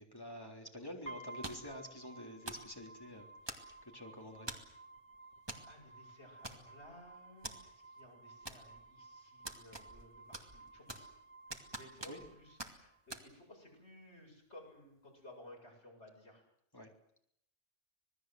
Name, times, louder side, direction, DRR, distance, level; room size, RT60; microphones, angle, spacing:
voice 1, 0.0-3.3 3.5-4.5 12.1-12.2 16.7-16.9, left 1 dB, 20° left, 1 dB, 3.7 m, -48 dB
sound 1, 1.1-13.1, right 2 dB, 40° left, 3.2 m, -55 dB
sound 2, 1.4-1.8 2.5-2.7 3.5-3.9 4.5-4.8 5.5-5.7 5.9-6.0 6.4-6.9 7.4-7.6 8.5-8.9 9.5-10.1 10.3-11.2 11.5-12.3 12.6-12.7 13.1-13.2, right 1 dB, 20° right, 2.3 m, -45 dB
voice 2, 5.6-11.1 11.8-16.4, left 1 dB, 65° left, 0 dB, 8.2 m, -57 dB
26.5 x 19.5 x 7.9 m, 0.70 s
omnidirectional pair, 1.2 m